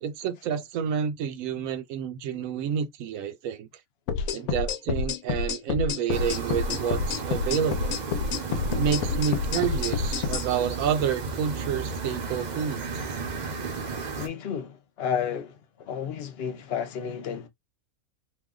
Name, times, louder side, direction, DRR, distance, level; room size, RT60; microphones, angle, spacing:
voice 1, 0.0-3.7 4.3-8.0 8.8-12.9, right 8 dB, 75° right, 1.0 m, -29 dB
sound 1, 4.1-10.5, left 6 dB, 80° left, 1.1 m, -28 dB
sound 2, 6.1-14.3, right 5 dB, 45° right, 0.6 m, -34 dB
voice 2, 14.2-17.5, left 8 dB, 60° left, 0.7 m, -32 dB
2.7 x 2.2 x 3.6 m
omnidirectional pair, 1.5 m